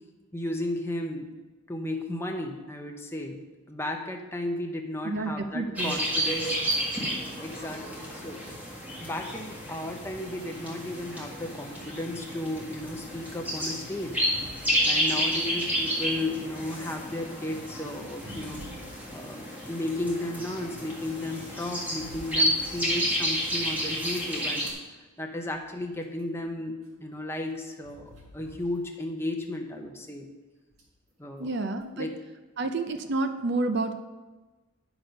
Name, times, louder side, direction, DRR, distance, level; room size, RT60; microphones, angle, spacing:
voice 1, 0.3-1.3 1.7-3.4 3.7-6.6 7.4-8.5 9.0-14.2 14.8-18.6 19.1-24.6 25.2-30.3 31.2-31.6 31.9-32.2, left 1 dB, 10° left, 3 dB, 0.7 m, -34 dB
voice 2, 5.0-5.9 31.4-32.1 32.6-34.0, right 2 dB, 50° right, 8 dB, 0.5 m, -29 dB
sound 1, 5.8-24.7, equal, 5° right, 1.7 m, -31 dB
sound 2, 12.8-16.5 16.9-21.0 21.4-24.4 24.9-25.0 25.3-29.1 29.4-29.5 30.7-31.1 31.8-31.9, equal, 70° right, 2.0 m, -50 dB
9.6 x 6.0 x 5.2 m, 1.2 s
head